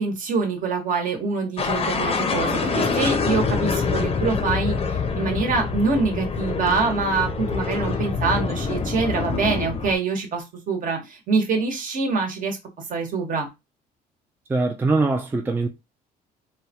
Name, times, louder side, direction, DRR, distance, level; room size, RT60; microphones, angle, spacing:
voice 1, 0.0-12.6 12.9-13.5, right 4 dB, 50° right, 1.1 m, -25 dB
sound 1, 1.6-9.9, left 5 dB, 35° left, 0.6 m, -25 dB
voice 2, 14.5-15.7, right 3 dB, 10° right, 0.4 m, -22 dB
3.3 x 2.2 x 2.8 m
cardioid pair, 110°, 17 cm